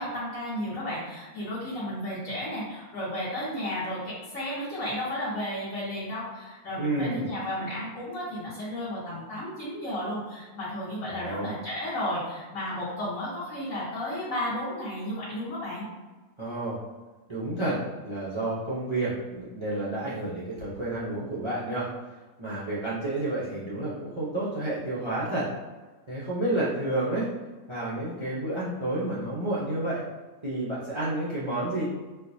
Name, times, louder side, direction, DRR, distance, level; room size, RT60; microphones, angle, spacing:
voice 1, 0.0-15.9, left 1 dB, 65° left, -10 dB, 1.3 m, -33 dB
voice 2, 6.8-7.3 11.1-11.5 16.4-16.8 17.3-17.8 18.0-21.9 22.4-25.5 26.1-27.3 27.7-30.0 30.4-31.8, right 2 dB, 40° right, -8 dB, 0.4 m, -30 dB
4.4 x 2.1 x 2.6 m, 1.3 s
omnidirectional pair, 1.5 m